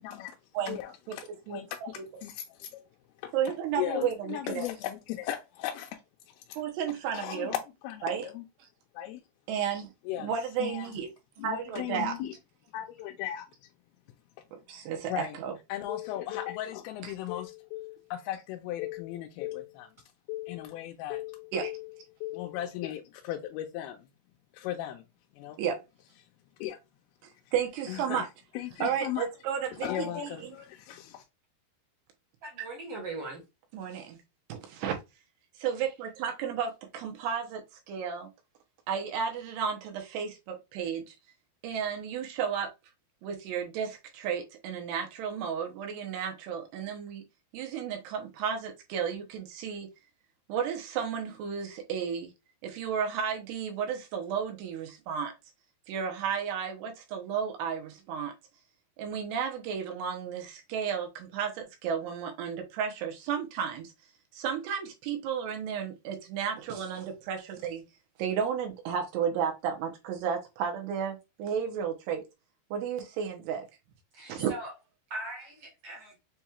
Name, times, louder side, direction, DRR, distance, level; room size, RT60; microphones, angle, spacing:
voice 1, 0.0-0.4 0.6-2.7 3.2-3.3 3.8-6.0 7.1-7.6 7.8-8.4 8.9-9.2 10.1-10.3 10.6-11.0 11.4-12.3 12.7-13.5 15.1-15.4 15.7-19.9 20.3-21.9 22.2-24.0 24.5-25.0 25.4-25.6 26.6-26.8 27.9-28.2 28.5-29.2 29.8-31.2, left 13 dB, 80° left, 2.2 m, -36 dB
voice 2, 1.5-2.0 3.3-4.7 6.6-7.6 8.0-8.3 9.5-9.9 10.2-11.1 11.4-12.1 14.5-15.5 21.5-21.7 25.6-25.8 27.5-28.3 28.8-30.6 33.7-34.2 34.5-35.0 35.6-38.3 38.9-41.1 41.6-42.7 43.2-47.2 47.5-49.9 50.5-52.3 52.6-55.3 55.9-58.3 59.0-63.9 64.3-67.8 68.2-72.2 72.7-73.7 74.3-74.5, right 7 dB, 90° right, 3.0 m, -33 dB
voice 3, 32.4-33.4 74.1-74.7 75.1-76.2, right 2 dB, 70° right, 1.4 m, -40 dB
7.0 x 2.3 x 2.9 m
omnidirectional pair, 4.7 m